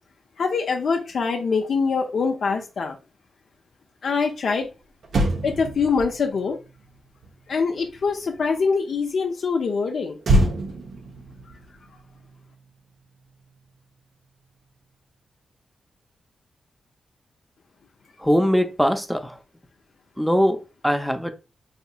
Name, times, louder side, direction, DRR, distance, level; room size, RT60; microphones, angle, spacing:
voice 1, 0.4-3.0 4.0-4.7 5.4-6.6 7.5-10.2, left 5 dB, 65° left, 0.4 m, -24 dB
Motor vehicle (road), 4.6-4.7 5.0-8.6 10.2-12.8 13.1-13.3, right 1 dB, 70° right, 0.7 m, -27 dB
voice 2, 18.2-19.4 20.2-20.6 20.8-21.3, equal, ahead, 0.5 m, -21 dB
4.1 x 2.7 x 2.2 m
cardioid pair, 90°, 0 cm